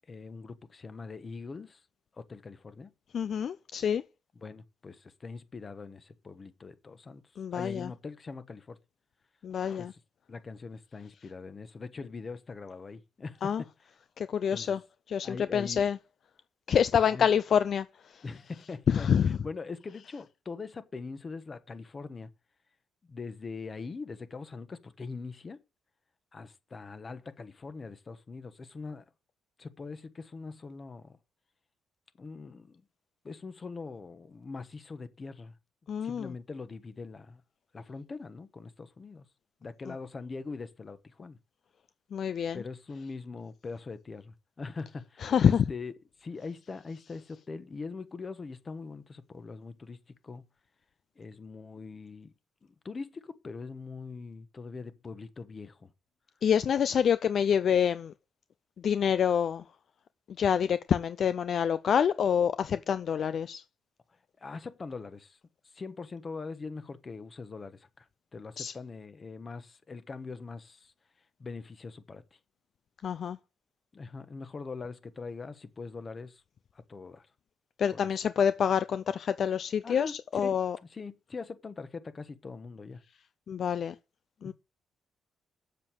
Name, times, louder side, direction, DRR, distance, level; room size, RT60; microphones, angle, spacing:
voice 1, 0.1-1.8 2.1-2.9 4.3-7.2 7.5-8.8 9.8-10.0 10.3-13.9 14.5-14.8 15.2-15.9 17.0-17.3 18.2-22.3 23.1-25.6 26.3-29.0 29.6-31.2 32.2-32.8 33.2-35.6 36.0-37.4 37.7-39.2 39.6-41.4 42.5-45.9 46.2-50.5 51.1-52.3 52.6-55.9 64.4-65.4 65.6-70.9 71.4-72.4 73.9-76.4 76.7-77.3 77.9-78.1 79.8-83.0 84.4-84.5, left 4 dB, 35° left, 1.3 m, -42 dB
voice 2, 3.1-4.0 7.4-7.9 9.4-9.9 13.4-13.6 14.2-14.8 15.1-16.0 16.7-17.9 18.9-19.4 35.9-36.3 42.1-42.6 45.2-45.6 56.4-58.1 58.8-59.6 60.4-63.6 68.6-68.7 73.0-73.4 77.8-80.8 83.5-83.9 84.4-84.5, left 8 dB, 60° left, 0.5 m, -27 dB
7.5 x 7.5 x 7.6 m
cardioid pair, 90°, 0 cm